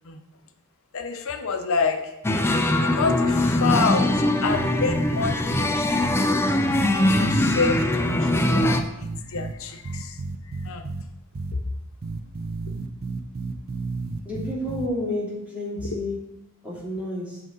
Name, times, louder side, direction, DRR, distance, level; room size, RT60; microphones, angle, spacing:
voice 1, 0.9-2.1 2.8-6.0 7.0-10.2 10.5-10.9, left 4 dB, 65° left, 7 dB, 0.7 m, -28 dB
sound 1, 2.2-8.8, left 1 dB, 10° left, 0.4 m, -22 dB
sound 2, 4.5-5.7 6.0-6.2 6.7-9.5 9.8-11.0 11.3-11.5 12.0-14.9, right 3 dB, 45° right, 0.5 m, -32 dB
voice 2, 14.2-16.2 16.6-17.4, left 1 dB, 5° right, -8 dB, 2.6 m, -30 dB
7.7 x 5.3 x 3.9 m, 0.89 s
head